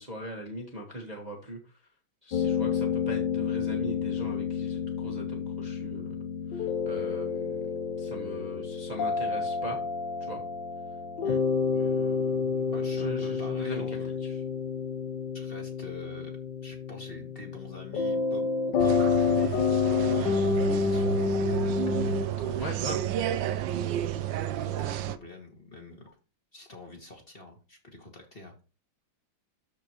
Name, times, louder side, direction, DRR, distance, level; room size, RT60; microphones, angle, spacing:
voice 1, 0.0-1.6 2.2-6.1 6.5-7.6 8.0-9.8 10.3-10.4 11.7-14.3 22.6-23.0, equal, 25° right, 0 dB, 1.4 m, -40 dB
sound 1, 2.3-22.3, left 5 dB, 65° left, 1.4 m, -29 dB
voice 2, 12.7-14.2 15.3-16.3 16.6-18.5 18.8-21.3 22.4-23.1 24.7-26.1 26.5-28.5, left 2 dB, 25° left, 1 dB, 2.0 m, -46 dB
sound 2, 18.8-25.2, right 11 dB, 70° right, 1.2 m, -31 dB
13.0 x 4.5 x 3.0 m, 0.32 s
omnidirectional pair, 2.3 m